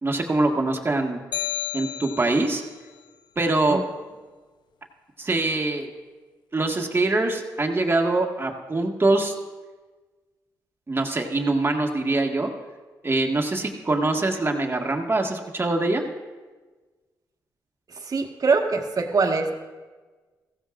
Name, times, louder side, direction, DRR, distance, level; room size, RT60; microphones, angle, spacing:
voice 1, 0.0-1.2 1.7-2.6 3.3-3.8 5.2-5.9 6.5-9.3 10.9-12.5 13.0-16.0, right 2 dB, 30° right, 2 dB, 1.8 m, -23 dB
sound 1, 1.3-2.7, left 11 dB, 70° left, 0.4 m, -31 dB
voice 2, 18.1-19.5, right 4 dB, 50° right, 3 dB, 1.6 m, -23 dB
16.0 x 15.0 x 2.5 m, 1.3 s
supercardioid pair, 55°, 8 cm